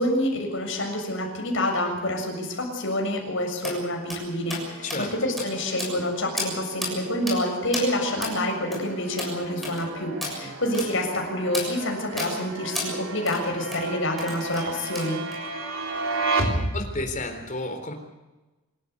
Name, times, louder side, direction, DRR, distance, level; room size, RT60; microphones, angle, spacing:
voice 1, 0.0-15.2, left 1 dB, 60° left, 2 dB, 7.0 m, -27 dB
sound 1, 3.6-3.8 4.1-4.2 4.5-4.7 4.9-5.0 5.4-5.5 5.8-6.1 6.4-6.5 6.8-6.9 7.3-7.4 7.7-7.9 8.2-8.4 8.7-8.8 9.2-9.3 9.6-9.8 10.2-10.4 10.7-10.9 11.5-11.7 12.2-12.3 12.8-12.9 13.3-13.4 13.7-13.8 14.2-14.7 15.0-15.4, left 2 dB, ahead, 6.8 m, -32 dB
sound 2, 4.6-17.2, right 2 dB, 70° right, 3.4 m, -34 dB
voice 2, 16.7-17.9, left 2 dB, 35° left, 6 dB, 3.8 m, -32 dB
26.5 x 14.0 x 8.2 m, 1.1 s
head